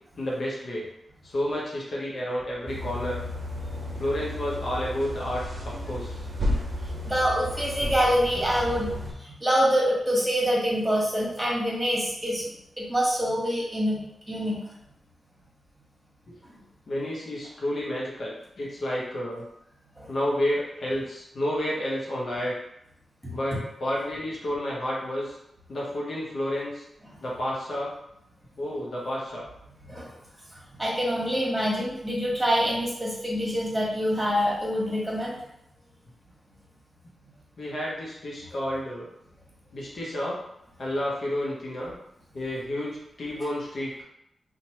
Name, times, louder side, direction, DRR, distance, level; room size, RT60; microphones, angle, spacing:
voice 1, 0.2-0.9 1.2-3.2 4.0-6.2 16.9-19.5 20.1-22.6 23.3-25.4 25.7-26.8 27.2-27.9 28.6-29.4 37.6-39.1 39.7-40.4 40.8-41.9 42.3-44.0, left 1 dB, 65° left, -4 dB, 0.9 m, -30 dB
sound 1, 2.7-9.1, left 1 dB, 55° right, 0.6 m, -33 dB
voice 2, 7.0-8.9 9.2-14.6 16.4-16.5 20.0-20.1 23.2-23.4 29.9-30.1 30.5-35.4, equal, 15° right, -5 dB, 1.4 m, -26 dB
2.8 x 2.5 x 3.1 m, 0.79 s
supercardioid pair, 40°, 0 cm